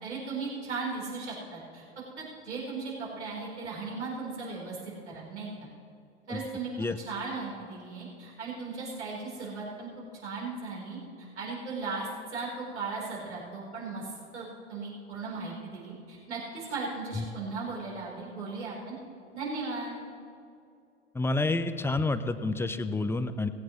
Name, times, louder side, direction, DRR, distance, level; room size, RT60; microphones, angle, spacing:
voice 1, 0.0-1.8 2.2-5.7 6.3-6.7 7.0-9.9 10.2-19.0 19.3-20.0, right 4 dB, 80° right, -4 dB, 4.1 m, -37 dB
voice 2, 21.1-23.5, left 2 dB, 5° left, 11 dB, 0.6 m, -29 dB
18.0 x 16.0 x 3.2 m, 2.5 s
hypercardioid pair, 85°, 34 cm